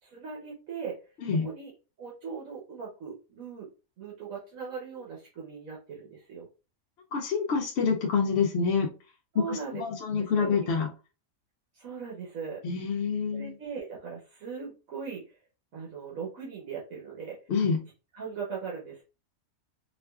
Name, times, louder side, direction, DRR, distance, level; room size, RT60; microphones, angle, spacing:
voice 1, 0.0-1.0 1.3-1.7 2.0-3.7 4.0-6.5 9.3-9.8 10.2-10.7 11.7-12.6 13.3-15.4 15.7-17.4 18.1-19.0, right 6 dB, 75° right, -3 dB, 1.3 m, -39 dB
voice 2, 7.1-8.9 9.4-10.9 12.6-13.5 17.5-17.8, left 5 dB, 65° left, 0 dB, 0.7 m, -27 dB
4.1 x 2.4 x 2.3 m, 0.32 s
omnidirectional pair, 1.4 m